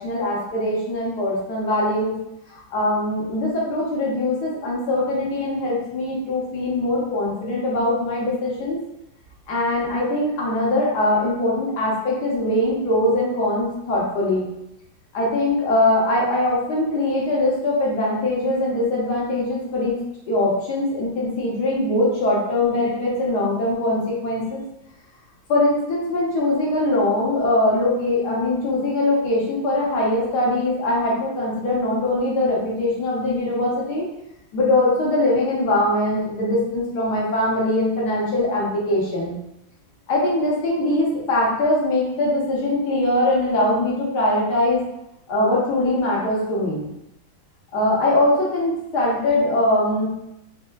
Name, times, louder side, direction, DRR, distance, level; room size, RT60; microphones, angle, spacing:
voice 1, 0.0-2.1 2.5-8.8 9.5-14.5 15.1-20.0 20.3-24.6 25.5-34.1 34.5-39.3 40.1-44.8 45.3-46.9 47.7-50.1, left 1 dB, 65° left, -5 dB, 1.3 m, -22 dB
4.3 x 2.1 x 2.2 m, 0.84 s
omnidirectional pair, 2.1 m